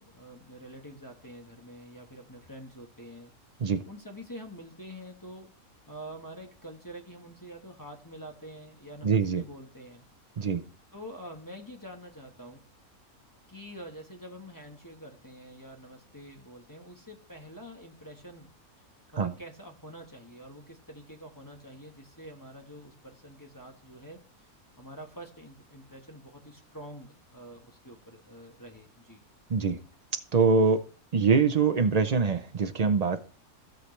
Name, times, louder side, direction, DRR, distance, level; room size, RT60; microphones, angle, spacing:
voice 1, 0.0-3.3 3.9-5.5 5.9-10.0 10.9-12.6 13.5-18.5 19.1-29.2, equal, 15° left, 1.1 m, -46 dB
voice 2, 9.0-9.4 10.4-10.6 19.2-19.3 29.5-29.8 30.3-30.8 31.1-33.2, right 5 dB, 70° right, 0.3 m, -24 dB
16.0 x 6.5 x 3.2 m
omnidirectional pair, 1.5 m